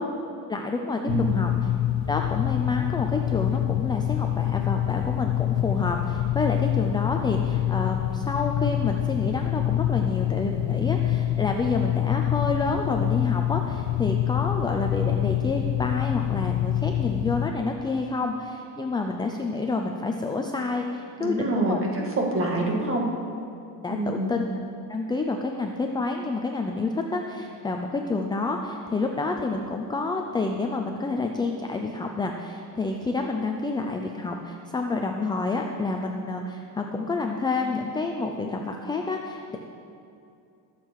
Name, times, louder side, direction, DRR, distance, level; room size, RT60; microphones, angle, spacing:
voice 1, 0.5-1.0 1.3-1.7 2.1-21.8 23.8-24.5 24.9-39.6, left 3 dB, 10° left, 2 dB, 0.4 m, -29 dB
voice 2, 1.0-1.4 21.2-22.0 22.3-23.0 23.9-24.3, right 1 dB, 30° right, -1 dB, 2.0 m, -26 dB
sound 1, 1.1-17.5, left 13 dB, 80° left, 0.7 m, -26 dB
20.5 x 7.6 x 4.7 m, 2.6 s
cardioid pair, 170°, 43 cm